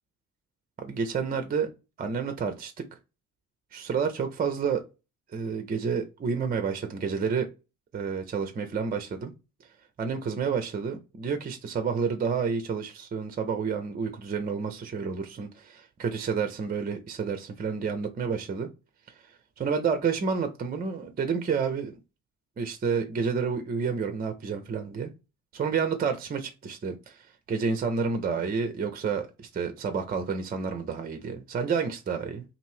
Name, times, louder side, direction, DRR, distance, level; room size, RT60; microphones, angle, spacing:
voice 1, 0.8-1.7 2.0-2.8 3.7-4.8 5.3-7.5 7.9-9.3 10.0-18.7 19.6-22.0 22.6-25.1 25.5-27.2 27.5-32.4, right 5 dB, 20° right, 7 dB, 0.6 m, -29 dB
2.7 x 2.6 x 3.0 m, 0.27 s
figure-of-eight pair, 45°, 44 cm